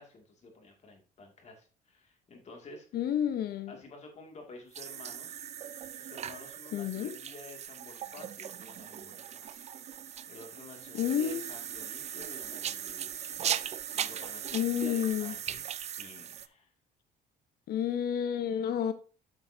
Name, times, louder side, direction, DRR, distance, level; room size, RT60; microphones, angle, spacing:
voice 1, 0.0-2.9 3.7-5.4 5.9-13.4 13.9-16.7, left 2 dB, 40° left, 2.5 m, -51 dB
voice 2, 2.9-3.8 6.7-7.1 10.9-11.5 14.5-15.3 17.7-18.9, left 9 dB, 65° left, 1.1 m, -30 dB
sound 1, 4.7-16.5, right 9 dB, 40° right, 0.5 m, -39 dB
8.1 x 7.8 x 2.8 m
cardioid pair, 110°, 17 cm